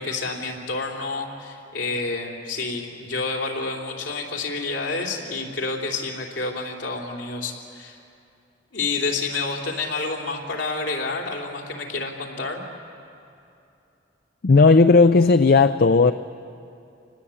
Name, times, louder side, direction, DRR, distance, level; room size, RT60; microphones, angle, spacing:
voice 1, 0.0-8.0 8.7-12.6, left 3 dB, 80° left, 3.4 m, -29 dB
voice 2, 14.4-16.1, left 3 dB, 55° left, 0.5 m, -14 dB
27.5 x 19.5 x 8.5 m
head